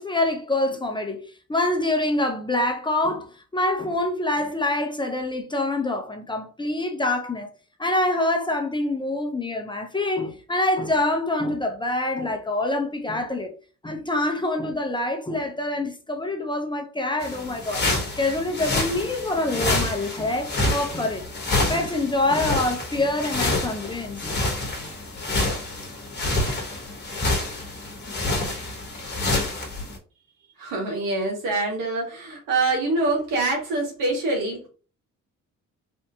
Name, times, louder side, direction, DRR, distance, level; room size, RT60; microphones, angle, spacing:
voice 1, 0.0-7.5 7.8-13.5 13.8-17.9 18.2-21.2 21.7-24.4, left 2 dB, 15° left, 0.6 m, -26 dB
sound 1, 17.2-30.0, left 2 dB, 35° left, 1.2 m, -27 dB
voice 2, 30.6-34.7, right 2 dB, 85° right, 1.6 m, -25 dB
3.4 x 2.6 x 2.7 m
cardioid pair, 95°, 32 cm